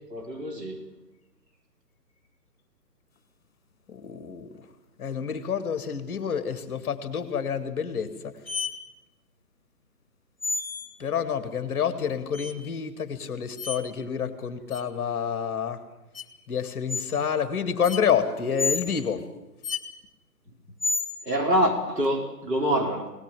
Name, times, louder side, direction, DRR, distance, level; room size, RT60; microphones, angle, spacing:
voice 1, 0.1-0.8 21.2-23.1, equal, 70° right, -1 dB, 4.9 m, -25 dB
voice 2, 3.9-4.5 5.0-8.3 11.0-15.8 16.5-19.2, left 7 dB, 15° left, 9 dB, 1.7 m, -28 dB
sound 1, 8.5-8.7 10.4-10.9 12.3-12.5 13.6-13.8 14.7-14.8 16.1-16.2 16.9-17.1 17.8-18.0 18.6-18.8 19.6-19.8 20.8-21.1, left 4 dB, 35° left, 1.6 m, -29 dB
21.5 x 18.5 x 7.7 m, 1.0 s
figure-of-eight pair, 155°, 50 cm